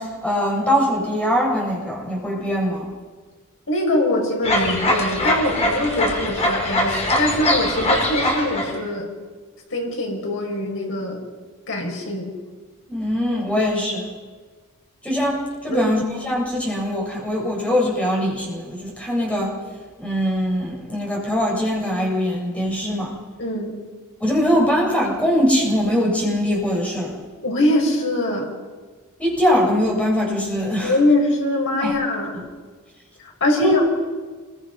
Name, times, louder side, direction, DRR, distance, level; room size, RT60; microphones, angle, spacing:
voice 1, 0.0-2.9 12.9-14.1 15.0-19.5 20.0-23.1 24.2-27.2 29.2-31.0 31.8-31.9 33.6-33.7, equal, 5° left, -3 dB, 7.6 m, -22 dB
voice 2, 3.7-9.1 9.7-11.2 11.7-12.3 15.7-15.9 23.4-23.8 27.4-28.5 30.8-32.4 33.4-33.8, left 1 dB, 60° left, 0 dB, 6.1 m, -22 dB
sound 1, 4.4-8.7, left 1 dB, 30° left, 5.2 m, -22 dB
28.0 x 23.0 x 5.7 m, 1.5 s
head